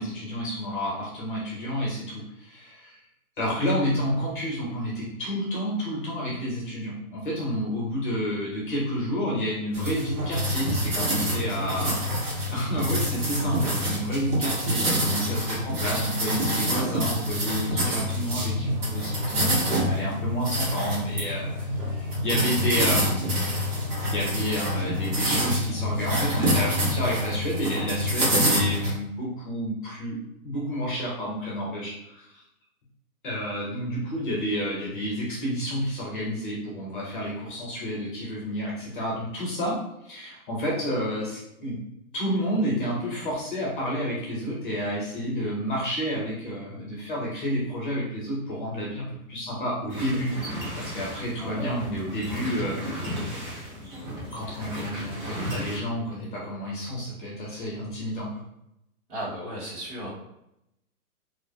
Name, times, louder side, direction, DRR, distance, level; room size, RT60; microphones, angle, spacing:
voice 1, 0.0-3.0 3.4-23.6 24.0-30.2 30.4-32.4 33.2-39.8 40.0-41.8 42.1-50.3 50.8-52.8 54.3-58.4, equal, 35° left, -5 dB, 0.7 m, -30 dB
sound 1, 9.7-28.9, equal, 80° right, 1.2 m, -26 dB
voice 2, 13.4-13.7 51.4-51.6 59.1-60.1, right 1 dB, 50° right, -6 dB, 1.3 m, -36 dB
sound 2, 49.9-55.8, equal, 30° right, 0.7 m, -35 dB
2.5 x 2.0 x 2.6 m, 0.82 s
hypercardioid pair, 160°, 44 cm